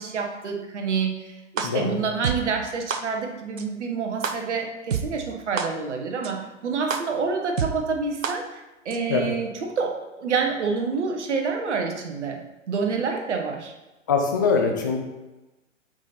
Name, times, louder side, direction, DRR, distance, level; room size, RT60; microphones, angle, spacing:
voice 1, 0.0-9.5 9.7-12.4 12.7-13.7, right 5 dB, 65° right, 3 dB, 1.2 m, -28 dB
voice 2, 1.6-2.0 9.1-9.3 14.1-15.0, left 5 dB, 15° left, 2 dB, 0.3 m, -22 dB
sound 1, 1.6-1.7 2.2-2.3 2.9-3.0 3.6-3.7 4.2-4.3 4.9-5.0 5.6-5.7 6.2-6.3 6.9-7.0 7.6-7.7 8.2-8.3 8.9-9.0, right 7 dB, 80° right, 0.7 m, -26 dB
6.1 x 4.2 x 4.2 m, 1.1 s
figure-of-eight pair, 115°, 38 cm